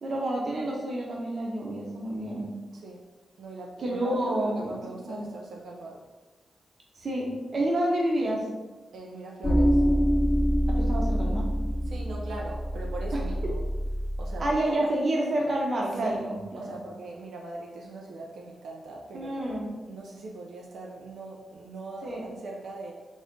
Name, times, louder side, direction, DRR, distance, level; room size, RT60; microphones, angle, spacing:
voice 1, 0.0-2.5 3.8-5.2 7.0-8.4 10.7-11.5 13.1-13.2 14.4-16.7 19.1-19.7 22.0-22.2, right 1 dB, 45° right, -1 dB, 0.9 m, -29 dB
voice 2, 2.7-3.0 3.4-6.0 8.9-9.8 11.9-13.6 14.2-14.9 16.0-19.4 19.9-22.9, right 2 dB, 85° right, -2 dB, 0.6 m, -41 dB
sound 1, 9.4-14.5, equal, 10° left, 0.6 m, -26 dB
4.0 x 3.5 x 3.7 m, 1.2 s
wide cardioid pair, 155°, 0 cm